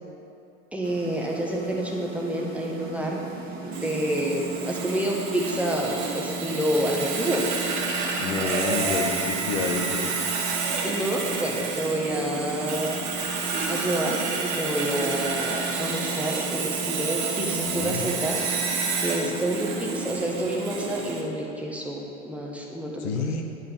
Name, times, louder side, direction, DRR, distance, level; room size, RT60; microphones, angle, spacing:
voice 1, 0.7-3.3 3.6-7.4 10.8-13.0 13.7-23.3, right 1 dB, 5° right, -2 dB, 1.2 m, -29 dB
sound 1, 0.8-20.8, right 3 dB, 20° right, 2.1 m, -37 dB
Sawing, 3.7-21.2, right 4 dB, 50° right, 1.7 m, -30 dB
voice 2, 8.2-10.2 17.3-18.1 23.0-23.4, left 4 dB, 60° left, 3 dB, 1.2 m, -29 dB
10.5 x 5.3 x 6.8 m, 2.6 s
figure-of-eight pair, 90°, 40 cm